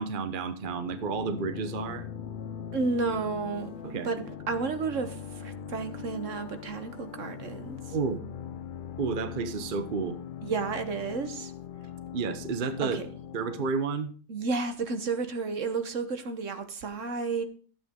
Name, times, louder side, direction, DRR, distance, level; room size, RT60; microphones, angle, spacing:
voice 1, 0.0-2.1 3.8-4.1 7.9-8.2 9.0-10.2 12.1-13.0 13.3-14.1, right 5 dB, 40° right, 1.0 m, -31 dB
sound 1, 0.6-13.7, left 8 dB, 60° left, 0.5 m, -41 dB
voice 2, 2.7-3.7 4.0-8.0 10.4-11.5 12.8-13.1 14.3-17.4, right 4 dB, 60° right, 1.4 m, -32 dB
12.5 x 8.2 x 3.7 m
omnidirectional pair, 1.5 m